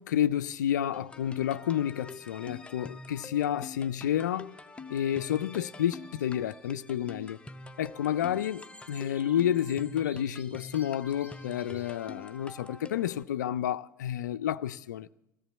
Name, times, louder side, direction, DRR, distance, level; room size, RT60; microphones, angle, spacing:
voice 1, 0.0-4.6 4.9-7.4 7.8-15.1, left 10 dB, 65° left, 0.4 m, -30 dB
sound 1, 0.9-13.2, left 3 dB, 10° left, 0.6 m, -46 dB
sound 2, 5.9-7.3 8.2-12.4, equal, 15° right, 2.2 m, -56 dB
17.0 x 14.0 x 4.1 m
figure-of-eight pair, 75°, 10 cm